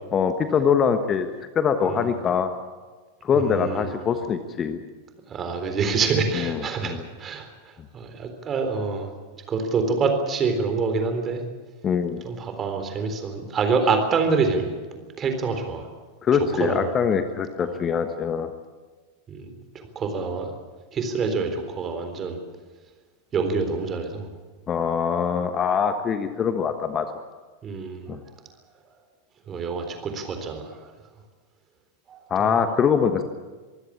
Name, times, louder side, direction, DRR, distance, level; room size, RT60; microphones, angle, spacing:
voice 1, 0.1-2.5 3.2-4.8 6.3-7.1 11.8-12.2 16.2-18.5 24.7-27.1 28.1-28.2 32.3-33.2, left 7 dB, 25° left, 9 dB, 1.3 m, -23 dB
voice 2, 3.3-3.9 5.3-7.5 7.9-9.1 9.5-11.4 12.2-14.7 15.2-15.9 16.6-16.9 19.3-19.5 19.7-20.5 20.9-22.4 23.3-24.3 27.6-28.1 29.5-30.8 32.1-32.6, right 4 dB, 25° right, 6 dB, 3.8 m, -26 dB
24.0 x 16.0 x 8.7 m, 1.3 s
figure-of-eight pair, 90°, 0 cm